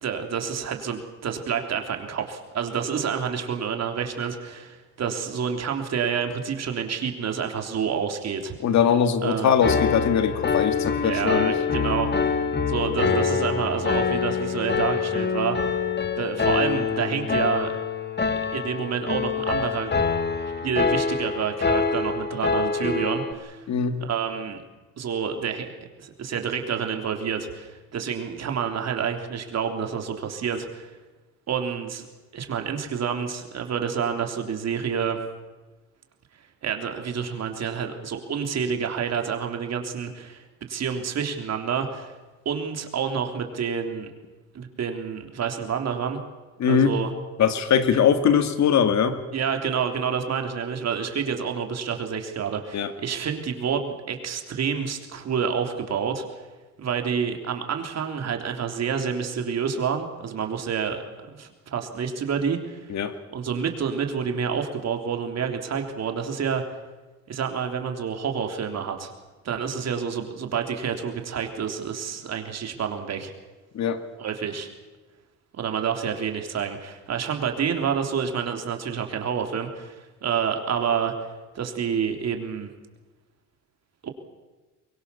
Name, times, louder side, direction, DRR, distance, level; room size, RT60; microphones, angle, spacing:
voice 1, 0.0-8.5 9.2-9.5 11.0-12.3 12.7-15.8 16.2-17.7 18.5-19.9 20.6-23.6 24.0-24.6 25.0-25.7 26.0-30.9 31.5-32.1 32.3-35.2 36.6-42.1 42.5-44.1 44.5-46.2 46.6-47.1 49.3-56.2 56.8-61.0 61.3-62.9 63.3-66.6 67.3-69.1 69.4-73.3 74.2-74.7 75.6-80.0 80.2-81.1 81.6-82.7 84.0-84.1, right 7 dB, 60° right, 4 dB, 3.5 m, -28 dB
voice 2, 8.6-11.6 23.7-24.0 46.6-46.9 47.4-49.2 52.7-52.9 62.9-63.1 73.7-74.0, left 7 dB, 65° left, 9 dB, 2.3 m, -21 dB
Piano, 9.6-23.3, left 5 dB, 35° left, 2.2 m, -25 dB
23.0 x 23.0 x 7.1 m, 1.2 s
cardioid pair, 90°, 30 cm